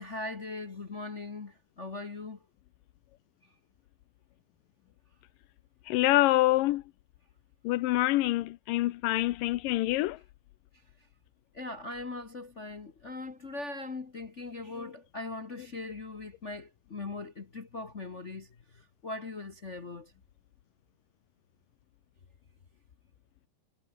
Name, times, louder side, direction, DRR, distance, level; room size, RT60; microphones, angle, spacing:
voice 1, 0.0-2.4 11.5-18.5 18.7-20.1, left 3 dB, 60° left, 0.7 m, -40 dB
voice 2, 5.9-6.8 7.6-10.2 14.8-14.9, left 17 dB, 90° left, 2.4 m, -26 dB
omnidirectional pair, 3.8 m